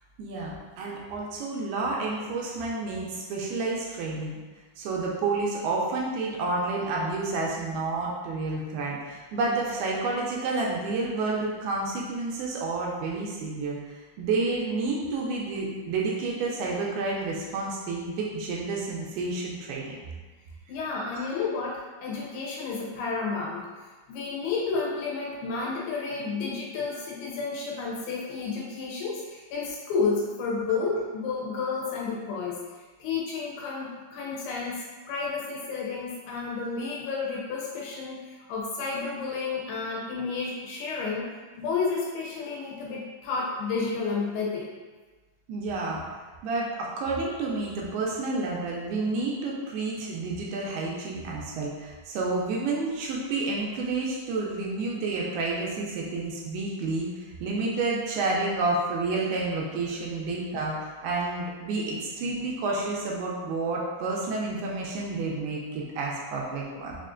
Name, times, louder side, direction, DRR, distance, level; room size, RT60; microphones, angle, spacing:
voice 1, 0.2-4.4 4.8-20.0 36.6-36.7 45.5-46.0 46.4-67.0, right 3 dB, 80° right, -3 dB, 2.4 m, -30 dB
voice 2, 20.7-32.6 33.0-41.3 41.6-44.8, left 4 dB, 80° left, -4 dB, 2.5 m, -31 dB
6.0 x 2.4 x 2.5 m, 1.3 s
omnidirectional pair, 4.6 m